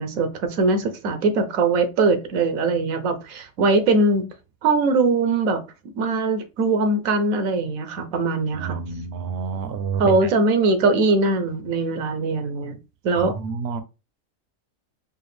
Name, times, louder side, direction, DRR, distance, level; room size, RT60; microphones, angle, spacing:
voice 1, 0.0-4.3 4.6-5.6 6.0-8.8 10.0-12.8 13.0-13.3, right 3 dB, 85° right, 1.1 m, -21 dB
voice 2, 8.5-10.3 13.1-13.8, right 5 dB, 60° right, 0.7 m, -29 dB
4.7 x 2.4 x 3.2 m
omnidirectional pair, 1.4 m